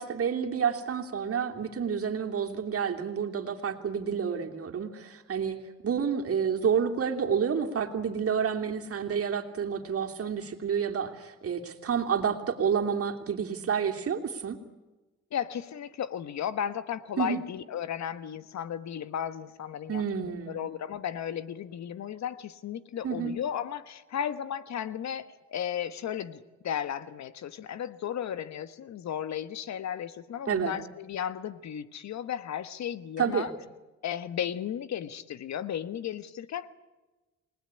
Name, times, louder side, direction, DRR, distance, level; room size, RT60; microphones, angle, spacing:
voice 1, 0.0-5.6 5.8-14.6 17.2-17.4 19.9-20.6 23.0-23.3 30.5-30.7 33.2-33.5, right 7 dB, 50° right, 4 dB, 3.1 m, -29 dB
voice 2, 15.3-33.5 34.0-36.7, left 9 dB, 65° left, 14 dB, 1.4 m, -35 dB
28.5 x 19.5 x 9.8 m, 1.2 s
cardioid pair, 90°, 30 cm